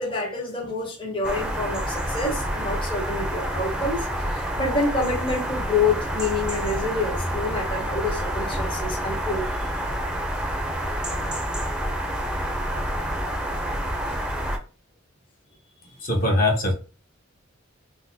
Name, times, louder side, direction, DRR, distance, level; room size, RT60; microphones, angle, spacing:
voice 1, 0.0-9.5 15.8-15.9, left 3 dB, 25° left, -2 dB, 0.7 m, -27 dB
sound 1, 1.2-14.6, equal, 5° right, 0.4 m, -28 dB
voice 2, 16.0-16.7, left 1 dB, 45° left, 0 dB, 1.0 m, -21 dB
3.8 x 2.1 x 2.7 m, 0.36 s
head